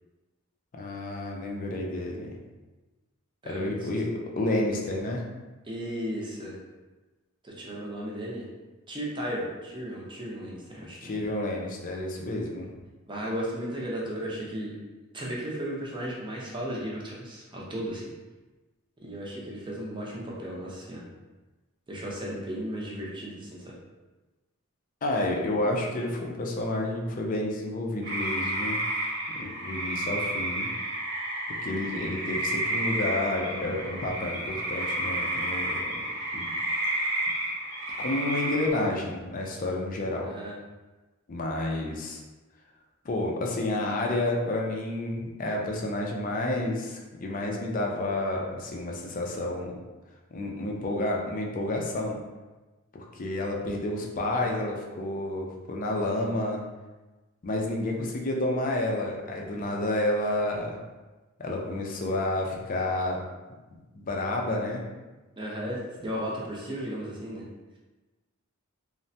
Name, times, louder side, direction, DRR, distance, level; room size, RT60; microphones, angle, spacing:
voice 1, 0.7-2.4 3.5-4.1 4.4-5.2 11.0-12.7 25.0-28.8 29.4-30.7 31.6-35.9 36.3-36.5 36.9-37.1 38.0-40.3 41.3-42.2 43.0-49.7 50.3-52.2 52.9-56.6 57.4-60.8 61.4-63.2 63.7-64.8, left 1 dB, 40° left, 0 dB, 0.4 m, -30 dB
voice 2, 3.4-3.9 5.6-6.6 7.4-8.5 8.9-11.1 13.1-14.8 15.1-18.1 19.0-21.0 21.9-23.8 40.3-40.6 65.4-67.5, equal, 25° right, -4 dB, 0.6 m, -35 dB
sound 1, 28.0-38.7, right 1 dB, 55° right, 0.9 m, -31 dB
3.1 x 2.1 x 2.7 m, 1.2 s
head